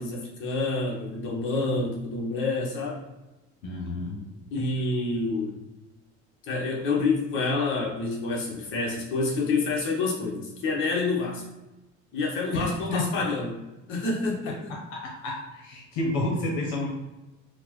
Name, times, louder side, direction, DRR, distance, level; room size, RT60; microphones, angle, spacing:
voice 1, 0.0-3.0 4.5-5.5 6.5-11.4 12.1-13.6 13.9-14.7, left 3 dB, 45° left, -2 dB, 0.9 m, -28 dB
voice 2, 3.6-4.4 12.6-13.0 14.5-16.9, left 2 dB, 85° left, 0 dB, 0.8 m, -31 dB
4.1 x 2.1 x 2.9 m, 1.0 s
cardioid pair, 170°, 29 cm